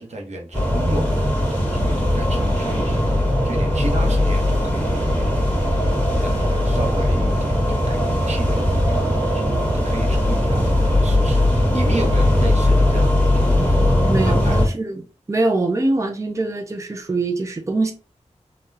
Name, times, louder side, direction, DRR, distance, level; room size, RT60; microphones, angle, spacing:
voice 1, 0.0-1.3 1.7-5.9 6.2-13.9 14.3-14.6, right 1 dB, 75° right, 1 dB, 0.9 m, -32 dB
sound 1, 0.5-14.7, left 1 dB, 10° left, 1.5 m, -19 dB
voice 2, 14.0-15.0 15.3-17.9, right 2 dB, 25° right, 4 dB, 0.5 m, -23 dB
3.7 x 2.2 x 2.6 m, 0.34 s
wide cardioid pair, 75°, 12 cm